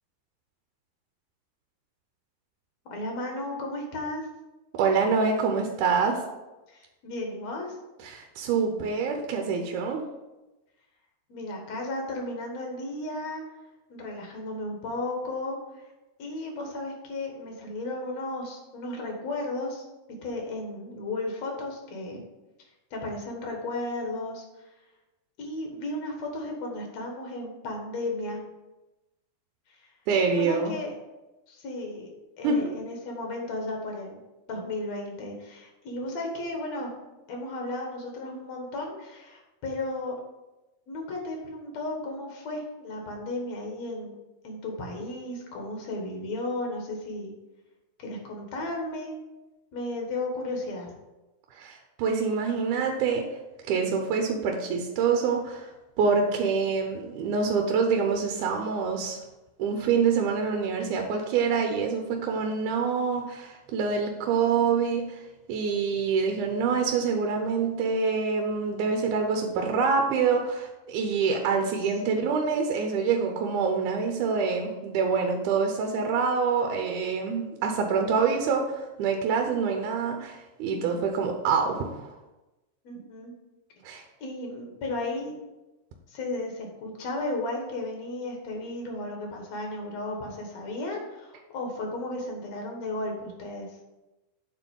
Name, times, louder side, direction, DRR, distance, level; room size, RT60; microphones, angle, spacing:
voice 1, 2.9-4.2 6.7-7.8 11.3-13.4 13.9-15.9 16.2-19.9 20.2-22.2 22.9-24.6 25.4-28.4 29.7-29.9 30.3-30.9 31.5-32.1 32.4-34.2 34.5-36.9 37.3-40.1 40.9-44.1 44.4-47.3 48.0-49.1 49.7-50.9 72.0-72.3 82.8-83.3 84.2-85.3 86.1-93.7, left 2 dB, 60° left, 1 dB, 2.5 m, -34 dB
voice 2, 4.7-6.2 8.0-10.0 30.1-30.7 32.4-32.8 51.5-53.3 53.7-55.7 56.0-59.2 59.6-65.2 65.5-82.2 83.8-84.1, right 5 dB, 75° right, 3 dB, 2.1 m, -26 dB
8.3 x 4.1 x 5.3 m, 1.1 s
omnidirectional pair, 3.7 m